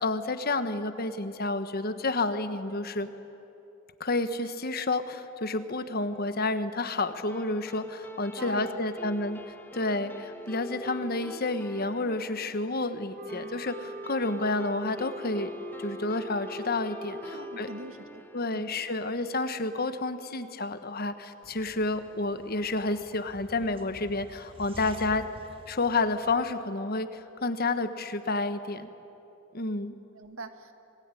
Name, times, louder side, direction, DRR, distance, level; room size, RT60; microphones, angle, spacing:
voice 1, 0.0-3.1 4.0-9.4 9.7-15.5 15.8-17.7 18.3-25.2 25.7-28.9 29.5-29.9, left 2 dB, 50° left, 10 dB, 1.3 m, -30 dB
sound 1, 7.3-20.0, left 1 dB, 10° left, 1.2 m, -45 dB
voice 2, 8.4-8.8 17.3-18.2 18.5-18.7 30.1-30.7, right 2 dB, 90° right, 7 dB, 1.9 m, -42 dB
sound 2, 13.1-18.0, equal, 45° right, 1.0 m, -43 dB
sound 3, 21.4-26.5, right 1 dB, 25° right, 1.7 m, -49 dB
26.5 x 20.0 x 9.9 m, 2.8 s
head